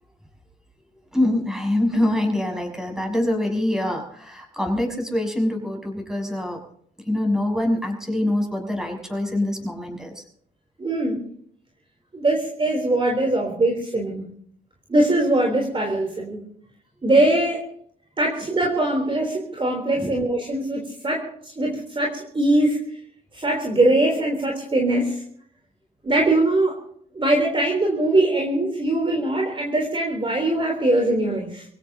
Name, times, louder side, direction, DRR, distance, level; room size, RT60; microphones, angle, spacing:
voice 1, 1.1-6.6 7.0-10.2 20.0-20.1, left 1 dB, 5° right, 2 dB, 6.5 m, -24 dB
voice 2, 10.8-11.2 12.1-14.3 14.9-16.5 17.0-17.7 18.2-22.9 23.3-25.2 26.0-26.8 27.1-31.7, right 2 dB, 25° right, 0 dB, 3.7 m, -22 dB
26.5 x 16.5 x 2.9 m, 0.64 s
cardioid pair, 90°, 20 cm